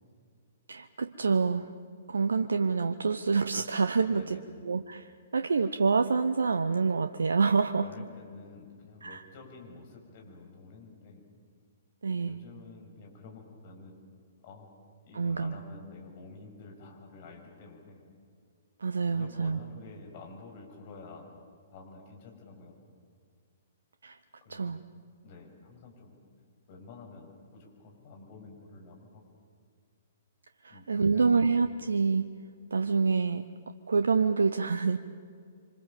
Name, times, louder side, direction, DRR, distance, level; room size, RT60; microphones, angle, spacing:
voice 1, 0.7-1.7 2.1-4.4 4.6-7.9 9.0-9.2 12.0-12.4 15.1-15.5 18.8-19.6 24.0-24.2 24.5-24.8 30.6-32.3 32.7-33.4 33.9-35.0, right 4 dB, 75° right, 9 dB, 0.9 m, -27 dB
voice 2, 4.1-4.5 7.8-11.2 12.2-14.0 14.4-14.7 15.0-18.0 19.0-21.3 21.7-22.8 24.4-24.7 25.2-26.1 26.7-29.4 30.7-30.9 31.1-31.4, left 3 dB, 45° left, 1 dB, 7.0 m, -49 dB
27.5 x 25.5 x 7.5 m, 2.2 s
figure-of-eight pair, 120°, 0 cm